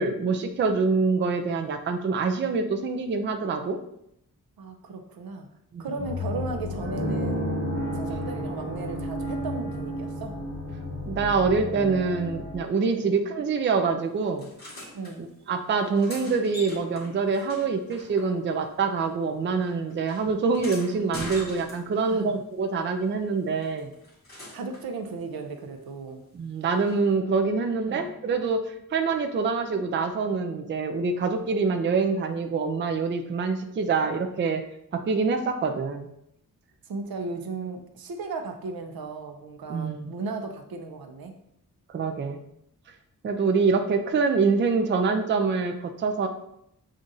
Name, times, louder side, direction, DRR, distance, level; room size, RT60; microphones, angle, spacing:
voice 1, 0.0-3.8 5.7-5.8 11.1-14.5 15.2-23.9 26.3-34.6 34.9-36.1 39.7-40.1 41.9-42.4 43.2-46.3, right 4 dB, 35° right, 5 dB, 0.4 m, -25 dB
voice 2, 4.6-5.5 5.8-7.5 7.9-10.4 12.7-13.1 14.9-15.2 21.9-22.4 24.5-26.2 27.9-28.1 36.9-41.3, right 3 dB, 85° right, 4 dB, 0.7 m, -36 dB
sound 1, 6.0-12.5, left 1 dB, 50° left, 1.2 m, -31 dB
sound 2, 14.4-15.1 15.7-18.7 19.0-22.1 23.6-24.9 26.9-27.0, left 1 dB, 25° left, 1.4 m, -43 dB
7.4 x 2.5 x 2.6 m, 0.75 s
wide cardioid pair, 155°, 35 cm